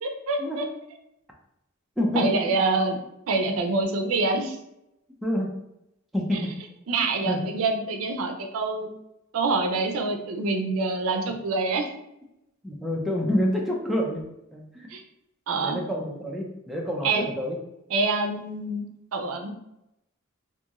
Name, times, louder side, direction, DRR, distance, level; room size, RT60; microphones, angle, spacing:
voice 1, 0.0-0.6 2.1-4.6 6.9-8.9 9.3-11.9 14.9-15.0 15.5-15.8 17.0-17.3 17.9-18.8 19.1-19.5, right 3 dB, 90° right, 4 dB, 0.4 m, -26 dB
voice 2, 2.0-2.3 5.2-5.5 6.1-6.5 7.3-7.4 12.6-14.2 14.5-14.9 15.6-17.6, left 1 dB, ahead, -2 dB, 0.4 m, -27 dB
2.6 x 2.4 x 2.9 m, 0.83 s
head